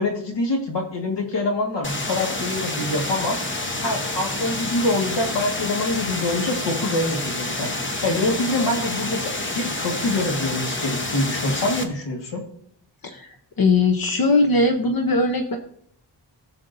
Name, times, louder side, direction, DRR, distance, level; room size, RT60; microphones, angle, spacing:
voice 1, 0.0-3.4 3.8-7.7 8.0-12.4, left 2 dB, 75° left, 1 dB, 1.9 m, -25 dB
sound 1, 1.8-11.8, left 2 dB, 25° left, 1.0 m, -28 dB
voice 2, 13.0-15.6, left 3 dB, 55° left, 4 dB, 0.9 m, -20 dB
17.0 x 7.1 x 2.7 m, 0.67 s
wide cardioid pair, 140°, 43 cm